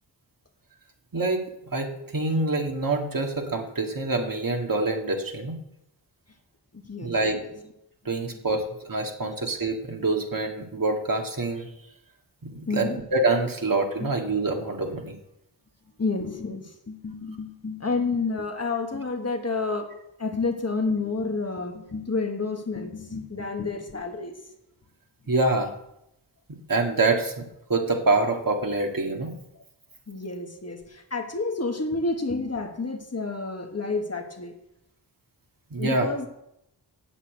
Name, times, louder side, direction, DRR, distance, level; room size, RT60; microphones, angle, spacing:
voice 1, 1.1-1.4 1.7-5.6 7.0-7.4 8.1-11.7 12.4-15.2 25.3-25.7 26.7-29.4 35.7-36.1, right 2 dB, 55° right, 2 dB, 1.9 m, -26 dB
voice 2, 6.7-7.5 9.2-9.3 12.7-13.0 14.0-14.1 16.0-19.9 20.2-24.3 30.1-34.5 35.8-36.3, left 3 dB, 35° left, 4 dB, 1.5 m, -30 dB
8.6 x 8.4 x 8.2 m, 0.82 s
wide cardioid pair, 105°, 41 cm